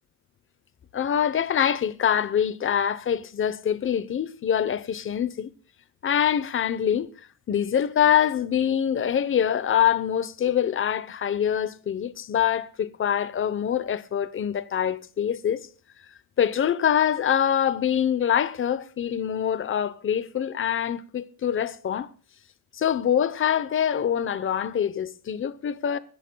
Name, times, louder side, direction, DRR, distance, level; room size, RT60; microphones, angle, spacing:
voice 1, 0.9-5.5 6.0-7.1 7.5-15.7 16.4-22.1 22.7-26.0, left 9 dB, 35° left, 0.9 m, -24 dB
24.5 x 11.0 x 2.3 m
cardioid pair, 120°, 36 cm